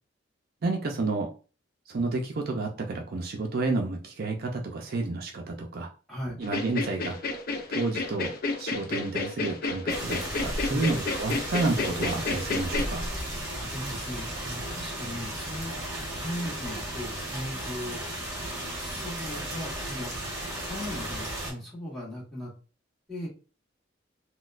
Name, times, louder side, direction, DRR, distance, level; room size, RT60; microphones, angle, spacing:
voice 1, 0.6-1.3 1.9-5.9 6.4-7.2 7.7-8.3 8.6-13.1, right 3 dB, 50° right, 2 dB, 0.4 m, -30 dB
voice 2, 6.1-6.4 10.6-11.0 13.5-15.7 16.2-18.0 18.8-20.1 20.7-22.5 23.1-23.3, left 1 dB, ahead, -6 dB, 1.5 m, -38 dB
sound 1, 6.4-12.9, left 3 dB, 50° left, 0.5 m, -31 dB
sound 2, 9.9-21.5, right 1 dB, 20° right, 1.4 m, -35 dB
4.0 x 2.1 x 2.4 m, 0.36 s
head